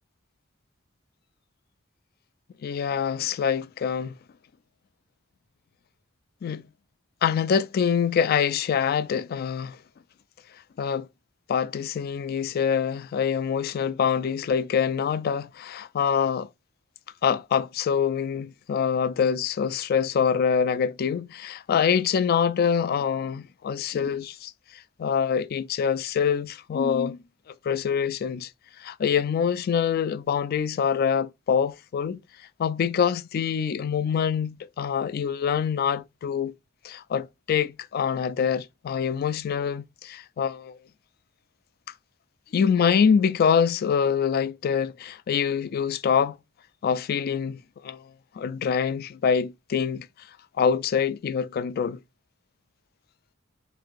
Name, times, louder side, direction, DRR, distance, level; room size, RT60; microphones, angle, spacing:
voice 1, 2.6-4.2 6.4-6.6 7.2-9.8 10.8-11.1 11.5-16.5 17.2-27.2 27.6-28.5 28.8-32.2 32.6-36.5 36.8-40.8 42.5-46.4 46.8-48.1 48.4-50.1 50.6-52.0, left 7 dB, 50° left, 0.3 m, -25 dB
3.5 x 2.8 x 3.8 m
head